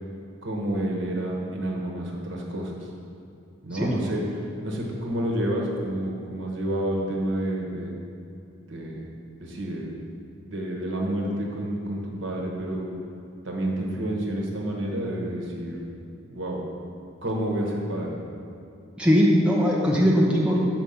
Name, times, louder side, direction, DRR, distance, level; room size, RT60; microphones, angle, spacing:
voice 1, 0.4-2.8 3.6-4.2 4.6-7.9 8.6-9.1 9.4-10.0 10.4-12.9 13.4-15.9 16.3-16.6 17.2-18.1, right 1 dB, 65° right, -1 dB, 1.1 m, -29 dB
voice 2, 3.7-4.1 19.0-20.6, equal, 5° right, -4 dB, 0.6 m, -20 dB
6.3 x 4.4 x 5.5 m, 2.6 s
head